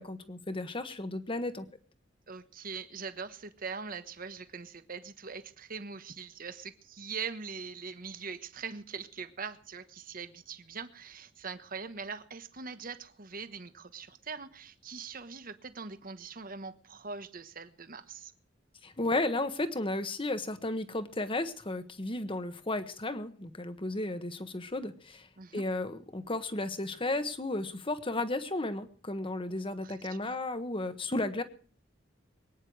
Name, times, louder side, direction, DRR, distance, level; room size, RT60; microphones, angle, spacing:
voice 1, 0.0-1.6 18.8-25.3 25.5-31.4, left 2 dB, 30° left, 10 dB, 1.3 m, -34 dB
voice 2, 2.3-18.3 25.4-25.6 29.8-30.4, right 5 dB, 50° right, 11 dB, 1.2 m, -42 dB
23.0 x 9.9 x 4.8 m, 0.43 s
head